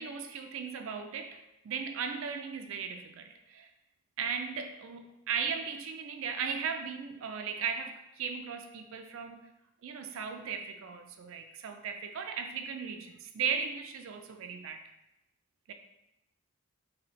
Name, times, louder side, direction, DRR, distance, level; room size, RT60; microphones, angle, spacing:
voice 1, 0.0-3.7 4.2-9.5 9.8-14.8 15.7-15.8, right 6 dB, 65° right, 6 dB, 0.3 m, -37 dB
4.1 x 2.8 x 3.0 m, 0.90 s
head